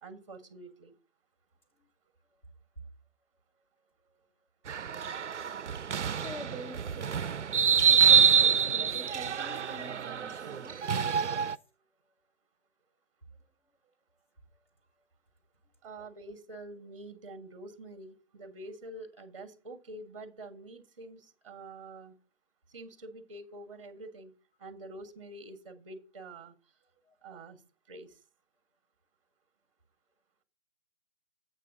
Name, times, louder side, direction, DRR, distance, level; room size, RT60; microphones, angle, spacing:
voice 1, 0.0-0.9 15.8-22.2 22.7-24.3 24.6-26.5 27.2-27.6 27.9-28.2, right 2 dB, 30° right, 12 dB, 0.8 m, -46 dB
sound 1, 4.7-11.6, right 7 dB, 85° right, 0.5 m, -26 dB
voice 2, 6.2-7.5 7.8-11.4 27.0-27.1, right 1 dB, 10° left, 2 dB, 0.6 m, -47 dB
7.6 x 6.0 x 5.0 m, 0.33 s
figure-of-eight pair, 150°, 34 cm